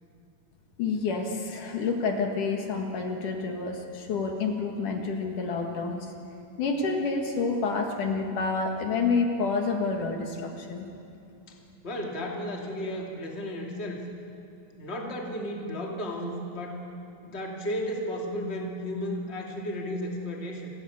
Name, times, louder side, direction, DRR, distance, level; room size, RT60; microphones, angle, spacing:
voice 1, 0.8-6.1 6.6-10.9, left 4 dB, 70° left, 3 dB, 3.2 m, -28 dB
voice 2, 11.8-14.0 14.8-16.8 17.2-20.7, equal, 20° left, 0 dB, 2.6 m, -33 dB
28.5 x 19.5 x 7.2 m, 2.6 s
omnidirectional pair, 3.9 m